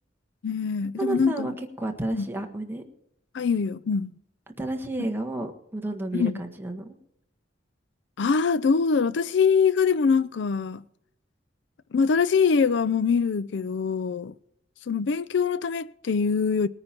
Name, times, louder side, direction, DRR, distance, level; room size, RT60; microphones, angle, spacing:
voice 1, 0.4-1.5 2.1-2.3 3.3-4.1 6.1-6.4 8.2-10.8 11.9-14.3 14.9-16.7, left 5 dB, 65° left, 0.4 m, -23 dB
voice 2, 1.0-2.8 4.6-7.0, right 2 dB, 10° right, 1.5 m, -31 dB
20.0 x 9.7 x 4.4 m
head